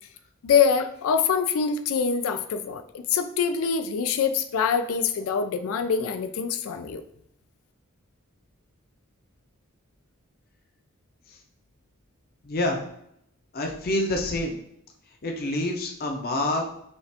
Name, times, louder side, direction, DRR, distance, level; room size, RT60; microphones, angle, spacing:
voice 1, 0.4-2.8 3.1-7.0, left 6 dB, 85° left, 9 dB, 0.4 m, -24 dB
voice 2, 12.4-12.8 13.5-14.6 15.2-16.7, left 1 dB, 50° left, 2 dB, 0.7 m, -27 dB
5.3 x 2.5 x 3.4 m, 0.74 s
head